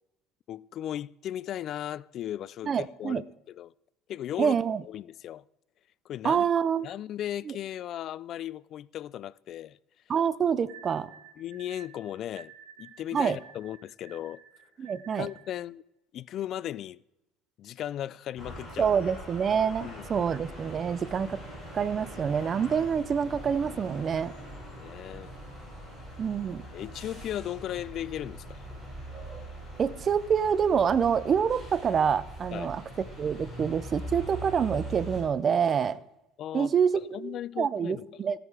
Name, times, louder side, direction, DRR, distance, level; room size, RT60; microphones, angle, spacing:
voice 1, 0.5-3.7 4.1-4.6 4.8-5.4 6.1-6.5 6.8-9.8 11.4-12.5 12.8-14.4 15.2-15.8 16.1-17.0 17.6-18.9 19.8-20.1 24.7-25.3 26.7-28.7 32.5-32.7 36.4-38.1, left 11 dB, 35° left, 0.3 m, -37 dB
voice 2, 2.6-3.2 4.4-4.8 6.2-6.9 7.5-7.6 10.1-11.1 13.1-13.4 14.8-15.3 18.8-21.4 21.7-24.3 26.2-26.6 29.8-32.8 33.2-36.0 36.5-38.4, right 7 dB, 25° right, 0.5 m, -26 dB
sound 1, 10.7-15.6, right 7 dB, 80° right, 3.6 m, -52 dB
sound 2, 18.4-35.2, right 1 dB, ahead, 6.3 m, -42 dB
15.0 x 10.0 x 4.8 m
cardioid pair, 165°, 0 cm